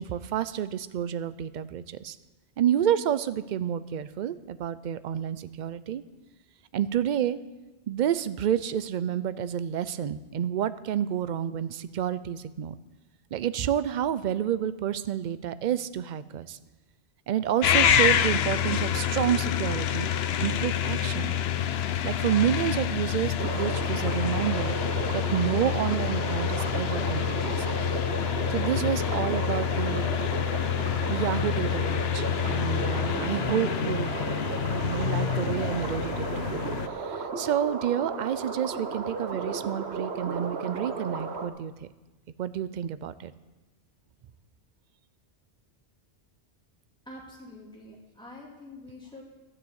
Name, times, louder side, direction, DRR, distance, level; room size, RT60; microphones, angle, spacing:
voice 1, 0.0-2.2 2.6-6.0 6.7-7.4 7.9-12.8 13.3-16.6 17.3-20.1 20.4-21.4 22.0-24.8 25.1-27.7 28.5-30.1 31.1-34.1 34.8-36.6 36.9-41.9 42.4-43.3, right 10 dB, 55° right, 15 dB, 0.5 m, -29 dB
sound 1, 17.6-36.9, left 9 dB, 70° left, 0.8 m, -27 dB
sound 2, 23.4-41.5, right 4 dB, 75° right, 1.2 m, -34 dB
voice 2, 47.1-49.2, left 2 dB, 5° left, -4 dB, 2.5 m, -46 dB
12.5 x 6.9 x 8.0 m, 1.1 s
omnidirectional pair, 1.1 m